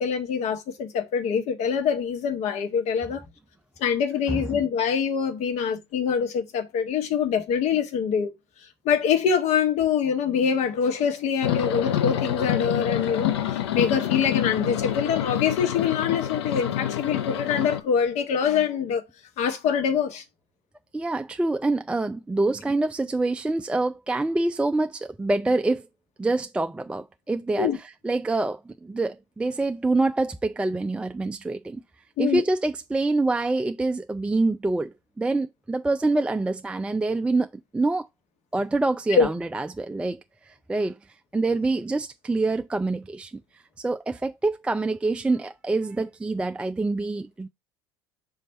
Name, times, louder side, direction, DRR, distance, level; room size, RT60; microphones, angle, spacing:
voice 1, 0.0-3.2 3.8-8.3 8.8-19.0 19.4-20.2 27.6-27.8 32.2-32.4 39.1-39.3, left 7 dB, 55° left, 1.5 m, -24 dB
sound 1, 11.4-17.8, left 10 dB, 75° left, 0.7 m, -27 dB
voice 2, 20.9-25.9 26.2-27.7 28.0-31.8 32.2-37.5 37.7-38.1 38.5-40.2 40.5-41.0 41.3-43.3 43.8-47.5, right 2 dB, 10° right, 0.4 m, -26 dB
6.2 x 3.3 x 5.3 m
hypercardioid pair, 75°, 14 cm